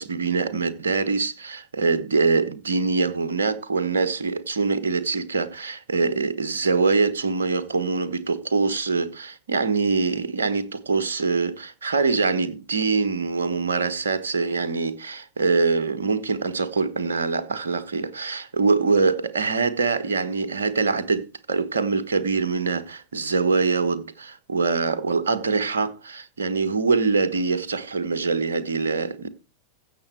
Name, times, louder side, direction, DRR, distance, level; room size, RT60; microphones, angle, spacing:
voice 1, 0.0-29.3, right 4 dB, 70° right, 1.2 m, -24 dB
15.5 x 6.9 x 4.6 m
figure-of-eight pair, 90°, 0 cm